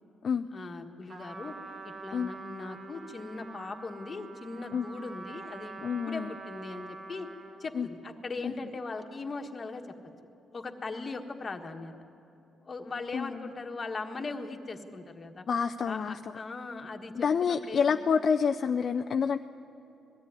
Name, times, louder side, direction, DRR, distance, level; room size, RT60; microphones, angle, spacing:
voice 1, 0.5-1.5 1.8-5.8 6.1-7.3 7.6-9.8 10.5-11.9 12.6-15.4 15.8-17.9, left 3 dB, 30° left, 5 dB, 1.5 m, -39 dB
Trumpet, 1.1-7.7, right 4 dB, 40° right, 1.8 m, -45 dB
voice 2, 5.8-6.3 7.7-7.9 8.4-8.5 13.1-13.4 15.5-16.2 17.1-19.4, left 6 dB, 50° left, 7 dB, 0.5 m, -28 dB
20.5 x 14.0 x 9.8 m, 2.9 s
cardioid pair, 115°, 0 cm